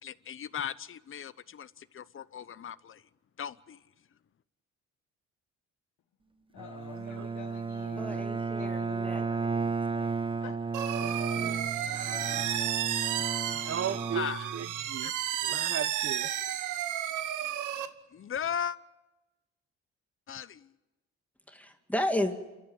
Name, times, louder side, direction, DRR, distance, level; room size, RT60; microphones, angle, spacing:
voice 1, 0.0-3.0 3.4-3.8 14.1-14.5 15.0-15.1 18.1-18.8 20.3-20.7, left 8 dB, 45° left, 0.9 m, -37 dB
voice 2, 6.5-10.6, left 10 dB, 80° left, 1.3 m, -49 dB
Bowed string instrument, 6.6-15.0, right 4 dB, 15° right, 0.9 m, -34 dB
voice 3, 8.0-9.5 11.0-11.6 12.8-12.9 21.5-22.3, left 1 dB, 5° left, 2.3 m, -34 dB
sound 1, 10.7-17.9, right 11 dB, 85° right, 1.3 m, -32 dB
voice 4, 13.5-15.1 15.4-16.3, right 8 dB, 50° right, 0.9 m, -36 dB
29.0 x 13.0 x 9.8 m
cardioid pair, 90°, 30 cm